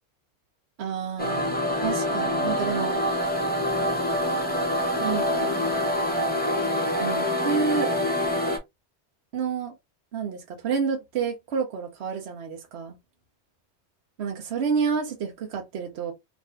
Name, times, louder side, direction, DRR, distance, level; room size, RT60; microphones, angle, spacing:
voice 1, 0.8-3.0 5.0-5.6 7.0-7.9 9.3-9.7 10.1-13.0 14.2-16.1, right 6 dB, 70° right, 1.0 m, -29 dB
sound 1, 1.2-8.6, left 1 dB, 10° left, 0.6 m, -25 dB
2.7 x 2.6 x 3.3 m
omnidirectional pair, 1.1 m